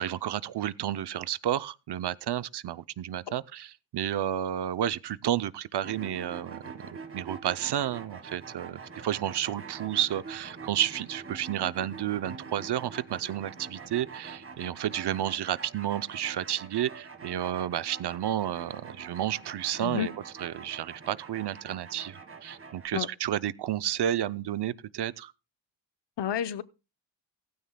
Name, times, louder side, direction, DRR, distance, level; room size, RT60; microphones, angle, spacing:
voice 1, 0.0-6.6 7.1-20.1 20.4-25.3, right 11 dB, 60° right, 0.6 m, -31 dB
sound 1, 5.8-22.9, right 4 dB, 30° right, 1.5 m, -45 dB
voice 2, 26.2-26.6, left 10 dB, 65° left, 0.8 m, -30 dB
16.5 x 15.0 x 2.2 m
wide cardioid pair, 155°, 45 cm